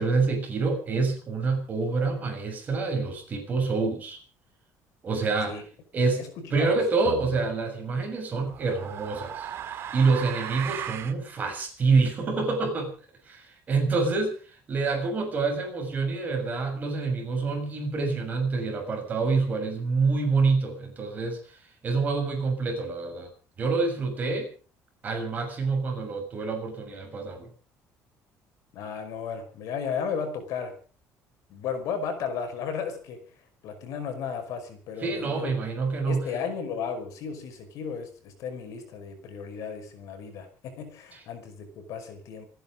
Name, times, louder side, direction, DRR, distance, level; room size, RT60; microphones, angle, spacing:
voice 1, 0.0-4.2 5.0-5.5 5.9-6.2 6.5-12.9 13.2-21.6 21.8-23.3 23.6-24.5 25.0-27.5 35.0-36.3 41.1-41.2, right 4 dB, 25° right, 3 dB, 6.7 m, -27 dB
voice 2, 6.2-6.8 28.7-30.8 31.5-33.2 33.6-35.6 36.0-42.5, left 6 dB, 60° left, 7 dB, 5.3 m, -34 dB
sound 1, 7.0-7.4 8.4-11.2, right 9 dB, 40° right, 1.9 m, -36 dB
27.5 x 10.5 x 5.1 m, 0.40 s
cardioid pair, 175°, 6 cm